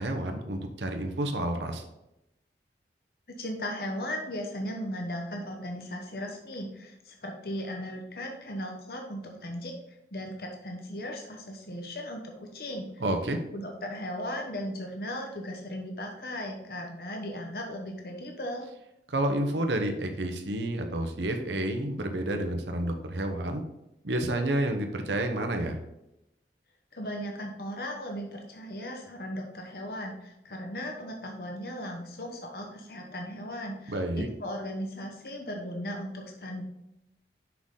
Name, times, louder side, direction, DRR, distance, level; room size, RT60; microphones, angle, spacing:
voice 1, 0.0-1.8 13.0-13.4 19.1-23.6 24.0-25.8 33.9-34.3, right 1 dB, 85° right, 5 dB, 0.9 m, -30 dB
voice 2, 3.4-13.0 13.5-18.7 26.9-36.6, equal, 60° left, 2 dB, 1.0 m, -37 dB
6.3 x 5.9 x 3.7 m, 0.88 s
head